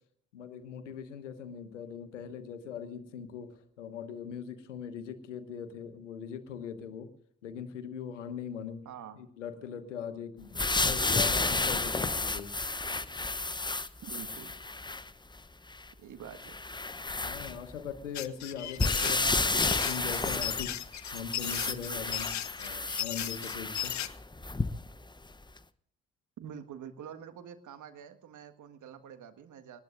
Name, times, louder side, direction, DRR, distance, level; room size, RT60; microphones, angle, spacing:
voice 1, 0.3-7.1 7.4-8.8 9.1-12.5 17.2-19.2 19.5-20.8 21.1-23.9, left 7 dB, 85° left, 11 dB, 1.2 m, -41 dB
voice 2, 8.8-9.2 14.0-14.5 16.0-16.6 18.9-19.3 26.4-29.8, right 8 dB, 55° right, 8 dB, 1.7 m, -46 dB
sound 1, 10.5-15.1 15.7-15.8 16.3-18.0 18.8-25.0 25.6-25.7, left 3 dB, 10° left, 0.9 m, -31 dB
sound 2, 18.1-24.1, left 12 dB, 50° left, 1.0 m, -36 dB
23.0 x 19.5 x 2.6 m, 0.66 s
figure-of-eight pair, 40°, 36 cm